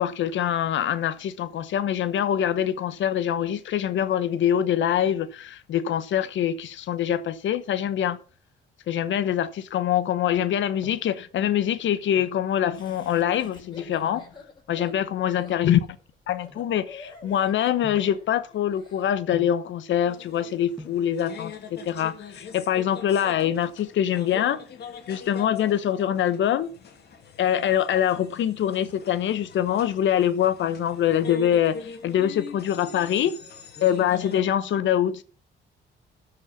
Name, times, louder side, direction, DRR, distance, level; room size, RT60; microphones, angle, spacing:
voice 1, 0.0-8.2 8.9-14.2 14.7-15.8 16.3-24.6 25.1-26.7 27.4-33.3 33.8-35.2, left 10 dB, 70° left, 1.0 m, -24 dB
sound 1, 10.8-11.2 11.9-12.5 13.7-14.1 14.8-17.2 17.8-18.2 19.3-19.7 20.5-20.6 20.8-21.1 22.2-22.8 23.1-23.2 23.4-23.5 23.9-24.3 24.6-25.7 26.1-26.5 26.9-28.0 28.3-28.4, left 1 dB, ahead, 1.7 m, -48 dB
Laughter, 12.7-19.1, left 3 dB, 25° left, 4.0 m, -48 dB
sound 2, 20.1-34.4, left 5 dB, 55° left, 2.3 m, -43 dB
13.0 x 5.5 x 5.8 m
cardioid pair, 90°, 20 cm